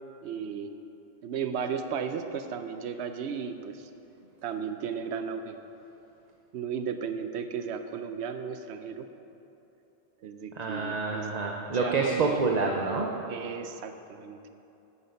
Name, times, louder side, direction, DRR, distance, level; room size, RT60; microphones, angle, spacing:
voice 1, 0.2-0.7 1.2-3.9 4.4-5.6 6.5-9.1 10.2-11.3 11.7-12.4 13.3-14.4, right 6 dB, 80° right, 8 dB, 0.9 m, -35 dB
voice 2, 10.6-13.1, right 4 dB, 45° right, 0 dB, 0.7 m, -27 dB
9.7 x 7.1 x 5.3 m, 2.9 s
omnidirectional pair, 1.1 m